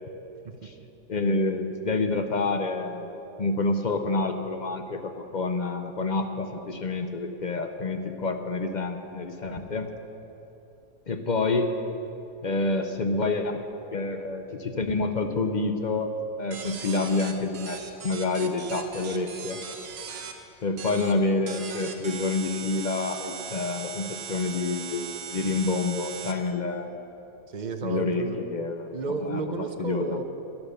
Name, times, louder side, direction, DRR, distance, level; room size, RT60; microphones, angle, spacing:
voice 1, 1.1-3.1 3.4-9.9 11.1-11.7 12.4-13.6 13.9-16.1 16.4-19.6 20.6-27.0 27.8-28.2 28.5-28.9 29.2-29.4 29.8-30.2, left 3 dB, 45° left, 6 dB, 0.6 m, -28 dB
sound 1, 16.5-20.3 20.8-21.1 21.5-26.3, right 7 dB, 70° right, 1.3 m, -39 dB
voice 2, 27.5-28.4 28.9-30.2, right 4 dB, 40° right, 7 dB, 0.7 m, -31 dB
11.5 x 10.5 x 6.8 m, 2.9 s
omnidirectional pair, 1.5 m